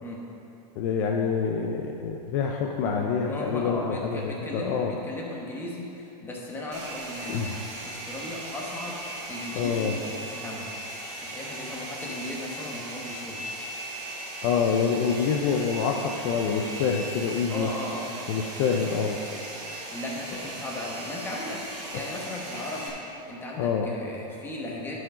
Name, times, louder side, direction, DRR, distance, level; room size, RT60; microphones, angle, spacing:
voice 1, 0.8-4.9 7.3-7.5 9.5-10.0 14.4-17.7 18.3-19.2 23.6-23.9, left 6 dB, 40° left, 1 dB, 0.6 m, -26 dB
voice 2, 2.8-7.5 7.8-9.0 9.3-10.7 11.2-13.4 17.5-18.1 19.9-21.6 21.9-22.9 23.2-25.0, left 1 dB, 10° left, -3 dB, 1.1 m, -36 dB
Domestic sounds home sounds, 6.7-22.9, right 1 dB, 30° right, 1.9 m, -38 dB
11.5 x 5.0 x 5.0 m, 2.9 s
supercardioid pair, 155°, 21 cm